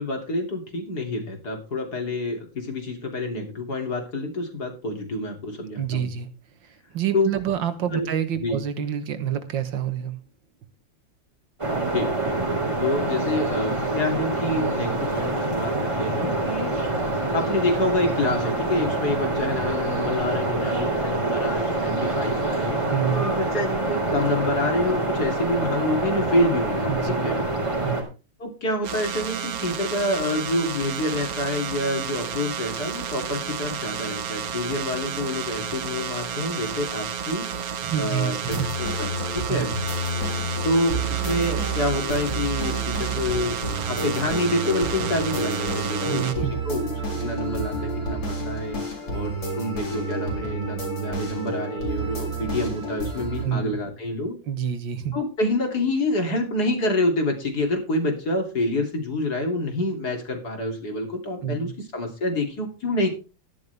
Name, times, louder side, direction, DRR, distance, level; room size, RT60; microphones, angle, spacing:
voice 1, 0.0-6.1 7.1-7.3 7.9-8.1 8.4-8.6 11.9-12.4 12.8-17.0 17.3-22.8 23.1-27.4 28.4-37.5 37.9-39.8 40.7-43.6 43.9-48.8 49.1-54.3 55.1-63.1, left 1 dB, 55° left, 3 dB, 3.5 m, -27 dB
voice 2, 5.8-6.3 6.9-10.2 22.9-23.2 26.9-27.3 27.8-28.1 37.8-38.7 39.5-39.8 46.0-46.5 53.4-53.8 54.5-55.2 61.4-61.7, right 9 dB, 75° right, 10 dB, 2.0 m, -27 dB
sound 1, 11.6-28.0, right 2 dB, 15° right, 3.0 m, -26 dB
sound 2, 28.8-46.3, right 8 dB, 55° right, 1.4 m, -31 dB
sound 3, 38.5-53.5, right 2 dB, 80° left, 4.7 m, -29 dB
13.0 x 11.0 x 3.4 m, 0.32 s
omnidirectional pair, 2.0 m